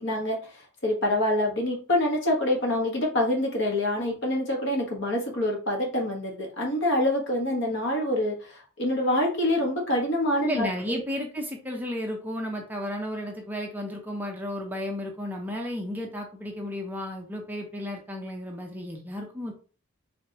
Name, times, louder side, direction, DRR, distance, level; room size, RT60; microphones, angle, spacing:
voice 1, 0.0-11.0, left 1 dB, 55° left, 1 dB, 1.4 m, -26 dB
voice 2, 10.4-19.5, left 1 dB, 10° right, 1 dB, 0.6 m, -33 dB
5.0 x 3.3 x 2.9 m, 0.38 s
head